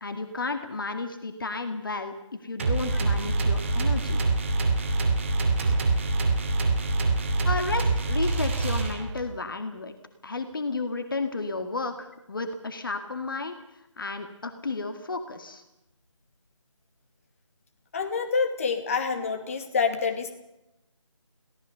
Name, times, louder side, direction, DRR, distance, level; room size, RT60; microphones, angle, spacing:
voice 1, 0.0-4.2 7.5-9.9 10.2-13.6 14.0-15.6, left 3 dB, 45° left, 7 dB, 2.0 m, -32 dB
sound 1, 2.6-9.3, right 3 dB, 25° right, 2.6 m, -25 dB
voice 2, 17.9-20.3, left 5 dB, 25° left, 6 dB, 2.4 m, -27 dB
23.0 x 18.0 x 6.9 m, 0.88 s
figure-of-eight pair, 160°, 16 cm